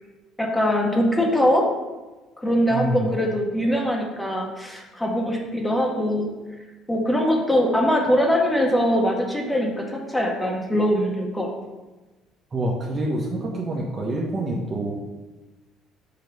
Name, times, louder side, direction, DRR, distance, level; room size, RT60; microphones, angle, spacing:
voice 1, 0.4-1.7 2.4-6.3 6.9-11.5, equal, 10° left, 0 dB, 1.2 m, -22 dB
voice 2, 2.7-3.1 12.5-14.9, right 1 dB, 35° right, -2 dB, 1.0 m, -26 dB
6.7 x 3.1 x 5.3 m, 1.2 s
cardioid pair, 95°, 0 cm